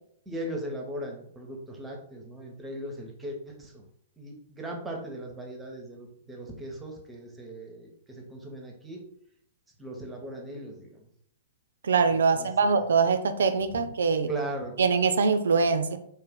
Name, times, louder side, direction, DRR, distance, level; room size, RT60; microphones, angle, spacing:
voice 1, 0.3-3.8 4.2-9.0 9.8-11.0 12.1-12.8 13.7-13.9 14.3-14.8, right 1 dB, 10° right, 1 dB, 0.6 m, -38 dB
voice 2, 11.8-14.3 14.8-16.0, right 5 dB, 65° right, 9 dB, 0.3 m, -23 dB
2.4 x 2.1 x 3.5 m, 0.69 s
figure-of-eight pair, 110°, 0 cm